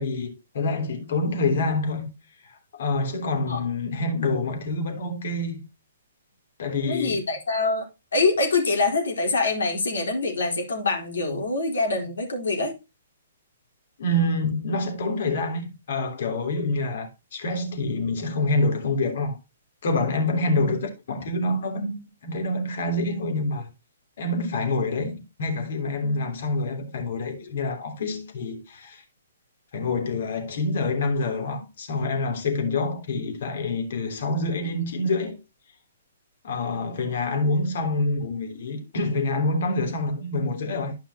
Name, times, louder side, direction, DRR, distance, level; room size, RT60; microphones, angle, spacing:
voice 1, 0.0-2.1 2.4-5.6 6.6-7.2 14.0-19.4 19.8-23.7 24.2-29.0 29.7-35.4 36.4-41.0, left 2 dB, 60° left, 3.3 m, -27 dB
voice 2, 6.8-7.9 8.1-12.7 20.6-20.7, left 3 dB, 80° left, 4.1 m, -25 dB
13.0 x 5.6 x 3.0 m
hypercardioid pair, 135°, 0 cm